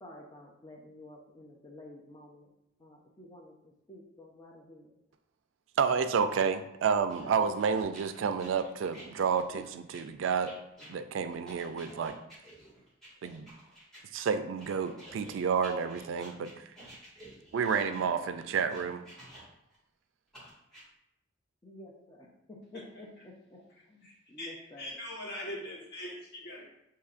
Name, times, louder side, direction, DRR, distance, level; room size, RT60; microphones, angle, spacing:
voice 1, 0.0-2.5 2.8-4.9 21.6-23.6 23.9-25.0, left 1 dB, 20° left, -1 dB, 0.5 m, -51 dB
voice 2, 5.8-10.5 10.9-12.1 13.2-13.5 14.1-16.5 17.5-19.0, right 6 dB, 70° right, 10 dB, 0.3 m, -30 dB
sound 1, 7.1-14.0 14.6-19.8 20.3-20.8, right 1 dB, ahead, 1.6 m, -52 dB
voice 3, 22.7-23.3 24.0-26.6, left 1 dB, 55° left, -4 dB, 1.3 m, -42 dB
6.7 x 2.8 x 2.4 m, 0.84 s
head